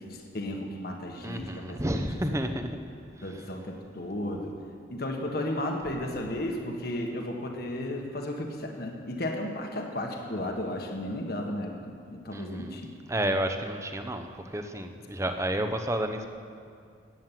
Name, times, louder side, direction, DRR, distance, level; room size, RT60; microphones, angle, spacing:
voice 1, 0.0-1.8 3.2-4.5 4.9-12.9, left 1 dB, 55° left, 2 dB, 1.5 m, -34 dB
voice 2, 1.2-2.7 12.3-12.8 13.1-16.3, right 1 dB, 15° right, 6 dB, 0.8 m, -31 dB
15.0 x 9.5 x 7.5 m, 2.3 s
head